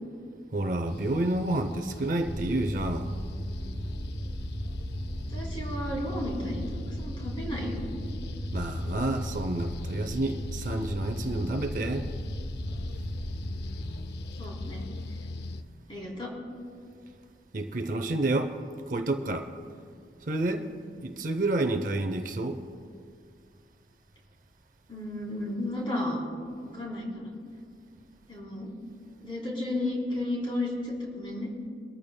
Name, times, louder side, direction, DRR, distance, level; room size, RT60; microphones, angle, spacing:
voice 1, 0.5-3.1 8.5-12.1 17.5-18.6 18.9-19.5 20.3-20.7 21.0-22.6, right 2 dB, 45° right, 0.6 m, -29 dB
sound 1, 0.9-15.6, left 2 dB, 60° left, 0.5 m, -39 dB
sound 2, 2.2-15.7, equal, 30° right, 2.2 m, -38 dB
voice 2, 5.3-7.9 14.4-14.8 15.9-16.3 24.9-26.2 26.6-27.3 28.3-28.7 29.2-31.5, left 1 dB, 30° left, 3.6 m, -33 dB
24.0 x 13.5 x 2.2 m
head